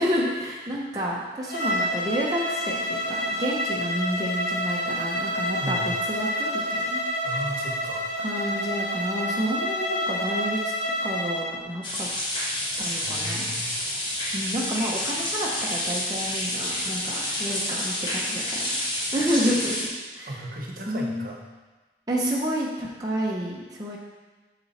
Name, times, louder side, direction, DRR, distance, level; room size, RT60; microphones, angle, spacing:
voice 1, 0.0-7.0 8.2-10.7 11.0-12.1 12.8-13.5 14.3-18.8 19.1-19.7 20.1-20.4 20.9-21.3 22.1-24.0, equal, 20° right, -5 dB, 0.9 m, -29 dB
Bowed string instrument, 1.4-11.5, equal, 65° left, 1.3 m, -28 dB
voice 2, 5.6-5.9 7.2-8.1 13.0-13.7 20.3-21.4, right 1 dB, 55° right, -1 dB, 1.1 m, -35 dB
sound 1, 11.8-19.8, left 1 dB, 25° left, 1.4 m, -29 dB
7.4 x 6.0 x 4.3 m, 1.2 s
head